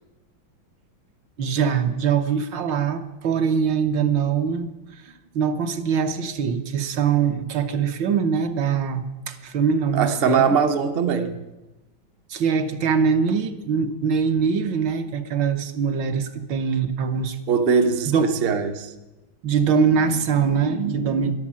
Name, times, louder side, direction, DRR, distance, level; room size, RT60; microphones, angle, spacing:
voice 1, 1.4-10.6 12.3-17.4 18.1-18.3 19.4-21.3, right 6 dB, 70° right, 1.7 m, -23 dB
voice 2, 9.9-11.3 17.5-18.9, right 6 dB, 45° right, 0.7 m, -21 dB
13.0 x 11.0 x 7.5 m
omnidirectional pair, 2.2 m